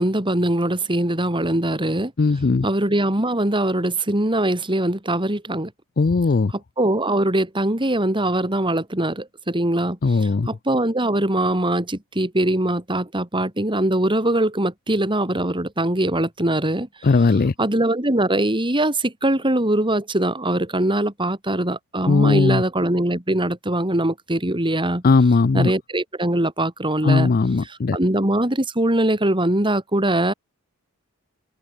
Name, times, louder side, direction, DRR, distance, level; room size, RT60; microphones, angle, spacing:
voice 1, 0.0-2.1 2.6-5.7 6.5-16.9 17.6-25.0 25.5-27.3 27.6-30.3, right 1 dB, 20° right, 3.3 m, -22 dB
voice 2, 2.2-2.7 6.0-6.5 10.0-10.5 17.0-17.5 22.1-22.6 25.0-25.7 27.0-28.0, left 4 dB, 40° left, 0.5 m, -18 dB
open air
head